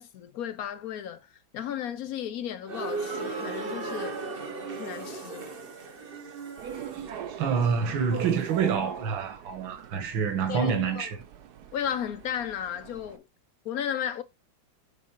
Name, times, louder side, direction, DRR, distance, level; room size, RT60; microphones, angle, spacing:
voice 1, 0.0-4.2 4.8-5.5 10.5-11.1 11.7-13.2 13.6-14.2, left 9 dB, 65° left, 0.9 m, -34 dB
sound 1, 2.7-8.6, right 3 dB, 35° right, 1.0 m, -37 dB
sound 2, 6.6-13.2, right 9 dB, 65° right, 1.2 m, -42 dB
voice 2, 7.4-11.2, right 6 dB, 80° right, 2.0 m, -27 dB
7.5 x 4.1 x 4.5 m
omnidirectional pair, 2.1 m